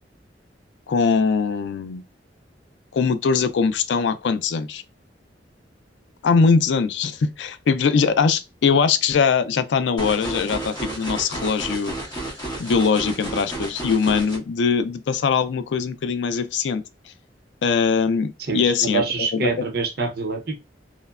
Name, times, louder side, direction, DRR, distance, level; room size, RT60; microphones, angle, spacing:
voice 1, 0.9-2.0 2.9-4.8 6.2-11.9 12.6-16.8 17.6-19.0 19.3-19.5, left 5 dB, 75° left, 0.4 m, -21 dB
sound 1, 10.0-14.4, right 1 dB, 25° left, 1.3 m, -32 dB
voice 2, 18.5-20.6, right 4 dB, 60° right, 0.8 m, -25 dB
3.0 x 2.1 x 2.3 m
head